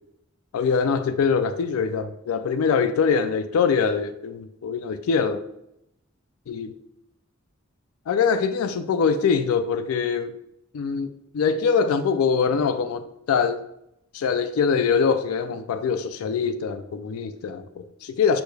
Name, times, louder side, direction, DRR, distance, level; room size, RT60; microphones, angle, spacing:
voice 1, 0.5-5.4 6.5-6.7 8.1-10.3 10.7-13.6 14.1-18.4, left 6 dB, 80° left, 0.3 m, -23 dB
6.2 x 2.3 x 3.2 m
head